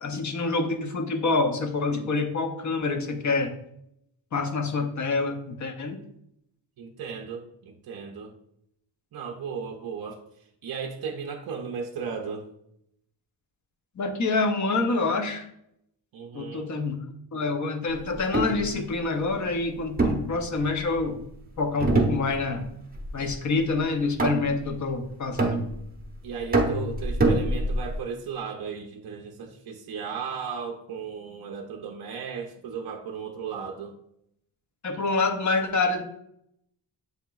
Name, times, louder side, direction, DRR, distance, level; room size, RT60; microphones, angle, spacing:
voice 1, 0.0-3.5 4.3-6.0 14.0-15.5 16.3-17.0 17.3-21.2 21.6-22.7 23.1-25.7 34.8-36.0, left 3 dB, 40° left, 6 dB, 0.6 m, -27 dB
voice 2, 6.8-8.3 9.1-12.5 16.1-16.7 26.2-34.0, right 6 dB, 50° right, 2 dB, 0.5 m, -36 dB
sound 1, 18.2-18.6 20.0-21.0 21.8-22.6 22.9-23.3 24.2-24.7 25.4-26.0 26.5-28.0, right 2 dB, 20° right, 0.7 m, -25 dB
7.9 x 2.9 x 2.3 m, 0.75 s
wide cardioid pair, 160°, 49 cm